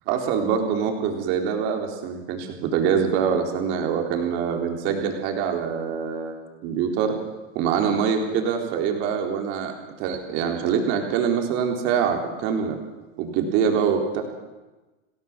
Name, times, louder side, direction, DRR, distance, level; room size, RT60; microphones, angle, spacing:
voice 1, 0.1-7.1 7.6-12.8 13.2-14.2, right 7 dB, 30° right, 3 dB, 3.9 m, -24 dB
29.5 x 18.5 x 7.5 m, 1.2 s
supercardioid pair, 180°, 38 cm